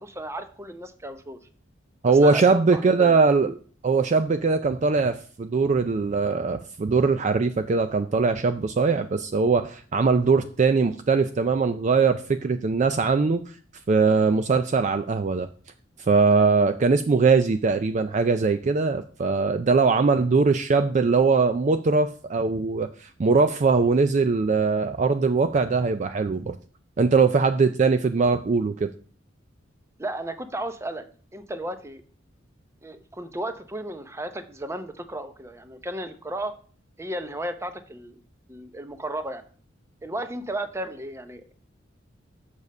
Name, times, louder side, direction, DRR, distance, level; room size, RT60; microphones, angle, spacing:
voice 1, 0.0-1.4 2.1-3.2 30.0-31.0 31.3-32.0 32.8-36.6 37.0-38.2 38.5-39.4 40.0-41.5, right 1 dB, 15° right, 9 dB, 0.8 m, -34 dB
voice 2, 2.0-3.5 3.8-13.4 13.9-15.5 16.0-26.5 27.0-28.9, right 4 dB, 40° right, 9 dB, 0.4 m, -21 dB
7.1 x 6.6 x 5.4 m, 0.44 s
head